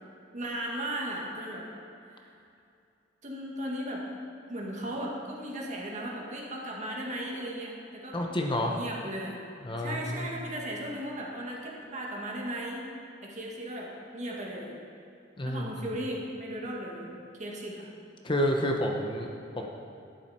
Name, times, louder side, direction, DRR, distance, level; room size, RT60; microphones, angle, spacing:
voice 1, 0.3-1.7 3.2-4.0 4.5-8.2 8.7-9.4 9.8-12.8 13.2-14.8 15.4-17.9, right 1 dB, 40° right, -2 dB, 1.9 m, -36 dB
voice 2, 8.1-8.8 9.6-10.3 15.4-15.7 18.2-19.7, equal, 25° left, 1 dB, 0.8 m, -29 dB
12.0 x 10.5 x 4.4 m, 2.6 s
head